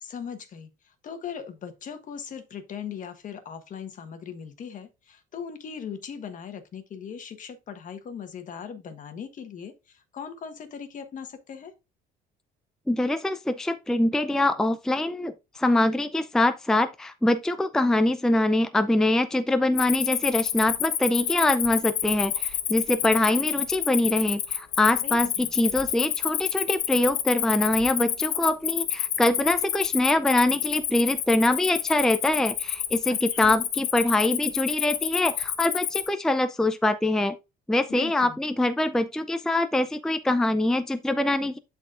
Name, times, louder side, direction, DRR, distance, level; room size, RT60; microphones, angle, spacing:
voice 1, 0.0-11.7 25.0-25.5 33.1-33.6 37.9-38.4, left 7 dB, 50° left, 1.4 m, -39 dB
voice 2, 12.9-37.4 37.7-41.6, left 1 dB, 5° left, 0.4 m, -24 dB
Cricket, 19.8-36.1, left 11 dB, 70° left, 1.1 m, -28 dB
11.5 x 4.2 x 2.5 m
cardioid pair, 110°, 17 cm